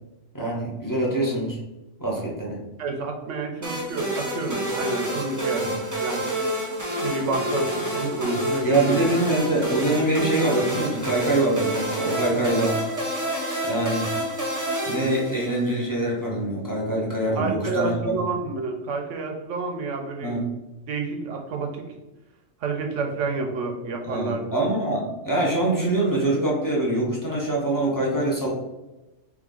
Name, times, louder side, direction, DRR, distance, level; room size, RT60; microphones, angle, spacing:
voice 1, 0.3-1.6 2.0-2.6 5.6-5.8 8.6-12.8 13.6-14.1 14.9-18.1 20.2-20.5 24.0-28.5, right 1 dB, 15° left, -3 dB, 0.9 m, -24 dB
voice 2, 2.8-5.7 6.0-6.3 6.9-9.0 17.4-20.4 20.9-21.8 22.6-24.5, right 3 dB, 75° right, 3 dB, 1.1 m, -29 dB
sound 1, 3.6-15.8, right 1 dB, 15° right, 0.8 m, -28 dB
3.6 x 3.5 x 3.8 m, 1.0 s
omnidirectional pair, 1.3 m